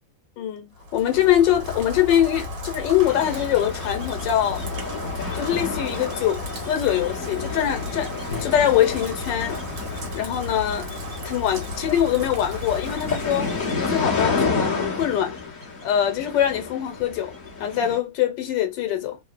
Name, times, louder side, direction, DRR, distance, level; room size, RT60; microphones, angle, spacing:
voice 1, 0.4-4.6 5.3-8.1 8.4-9.6 10.1-10.9 11.2-13.5 13.8-15.3 15.8-17.3 17.6-19.2, left 11 dB, 85° left, 1.4 m, -23 dB
Rain, 0.8-14.6, left 2 dB, 80° right, 1.7 m, -34 dB
sound 1, 3.0-18.0, left 4 dB, 30° left, 1.1 m, -31 dB
Drum, 8.3-12.1, left 4 dB, 55° left, 1.5 m, -43 dB
3.6 x 2.1 x 2.4 m
omnidirectional pair, 1.9 m